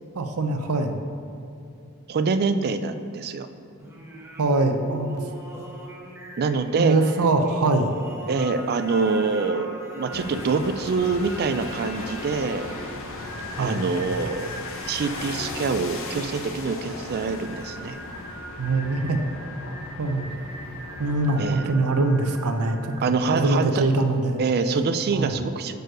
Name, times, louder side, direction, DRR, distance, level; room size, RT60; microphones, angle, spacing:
voice 1, 0.1-1.0 4.4-5.2 6.8-7.9 13.6-13.8 18.6-19.2 20.0-20.3 21.0-24.4 25.1-25.3, right 2 dB, 85° right, 6 dB, 0.6 m, -23 dB
voice 2, 2.1-3.5 6.4-7.0 8.3-12.7 13.6-14.5 14.9-18.0 21.4-21.8 23.0-23.8 24.4-25.8, right 4 dB, 45° right, 10 dB, 0.4 m, -25 dB
Singing, 3.8-23.4, equal, 10° right, 1.0 m, -41 dB
sound 1, 10.1-21.6, left 2 dB, 65° left, 0.8 m, -37 dB
6.5 x 4.5 x 6.1 m, 2.6 s
head